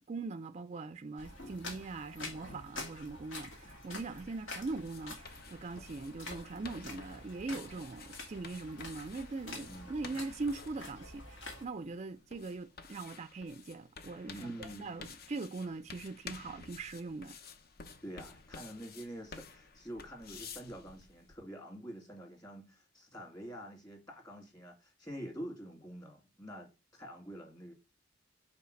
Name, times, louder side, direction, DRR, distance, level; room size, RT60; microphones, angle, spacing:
voice 1, 0.1-17.3, right 3 dB, 35° right, 0.4 m, -41 dB
sound 1, 1.2-11.6, left 2 dB, 75° left, 2.4 m, -47 dB
sound 2, 3.7-21.4, left 5 dB, 50° left, 0.7 m, -52 dB
voice 2, 14.3-15.0 18.0-27.7, right 1 dB, 20° left, 2.1 m, -46 dB
5.6 x 4.7 x 6.3 m
head